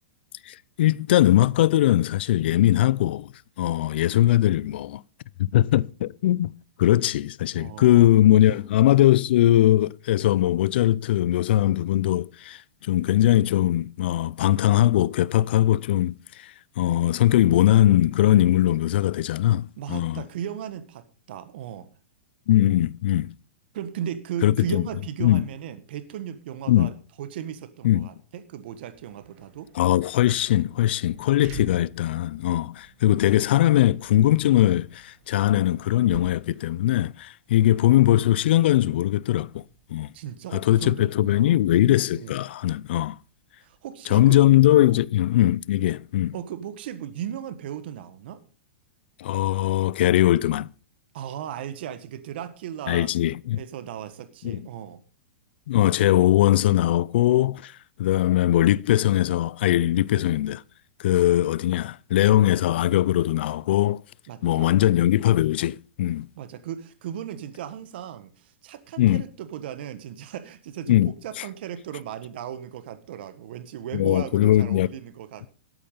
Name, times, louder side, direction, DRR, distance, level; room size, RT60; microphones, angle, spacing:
voice 1, 0.5-3.3 3.6-5.0 5.4-6.5 6.8-20.2 22.5-23.3 24.4-24.9 25.2-25.4 26.7-26.9 27.8-28.1 29.8-39.6 39.9-40.1 40.5-43.2 44.1-46.3 49.2-50.7 52.9-53.6 54.4-54.6 55.7-57.7 58.0-60.6 61.0-64.0 64.4-66.3 69.0-69.2 70.9-71.1 73.9-74.9, left 13 dB, 65° left, 0.5 m, -20 dB
voice 2, 7.5-8.1 8.5-8.6 19.8-21.9 23.7-29.7 40.1-41.6 42.1-42.4 43.6-44.4 44.8-45.0 46.3-48.4 51.1-53.1 53.5-55.0 64.3-64.7 66.4-75.5, right 9 dB, 65° right, 1.5 m, -36 dB
sound 1, 28.8-44.1, right 5 dB, 45° right, 3.3 m, -50 dB
13.0 x 8.6 x 5.6 m
hypercardioid pair, 130°, 6 cm